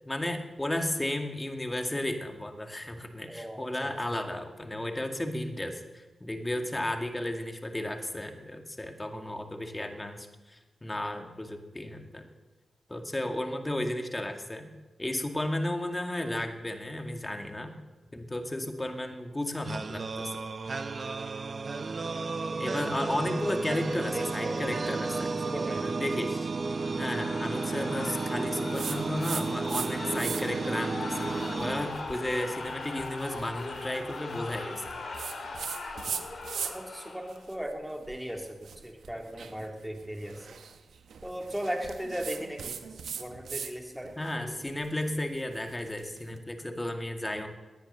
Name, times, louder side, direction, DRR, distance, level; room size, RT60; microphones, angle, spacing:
voice 1, 0.1-12.3 12.9-14.7 15.0-17.7 18.1-20.3 22.6-25.4 25.8-26.5 26.9-34.8 44.2-47.5, left 1 dB, 20° left, 5 dB, 2.2 m, -33 dB
voice 2, 3.3-3.9 22.5-24.5 25.4-25.9 36.6-40.5 41.2-42.8 43.2-44.6, equal, 5° right, 3 dB, 2.9 m, -38 dB
sound 1, 19.7-32.6, right 4 dB, 50° right, 0.8 m, -33 dB
sound 2, 26.6-37.5, left 3 dB, 65° left, 3.7 m, -40 dB
sound 3, 28.7-29.9 30.1-30.7 31.2-37.0 37.3-43.7 44.0-46.2, right 6 dB, 85° right, 1.1 m, -40 dB
18.5 x 10.5 x 6.8 m, 1.2 s
cardioid pair, 65°, 0 cm